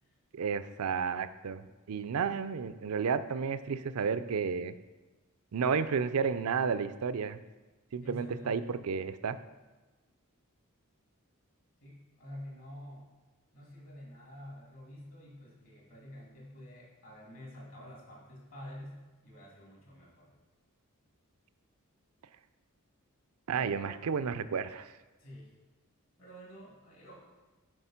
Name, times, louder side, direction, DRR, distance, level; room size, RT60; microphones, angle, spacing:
voice 1, 0.3-4.7 5.5-7.4 7.9-9.4 23.5-24.9, right 6 dB, 75° right, 13 dB, 0.5 m, -32 dB
voice 2, 8.0-8.6 11.8-13.1 13.5-20.3 23.5-23.9 25.2-25.5 26.2-27.3, equal, 65° left, -3 dB, 2.8 m, -48 dB
7.9 x 4.9 x 5.8 m, 1.2 s
head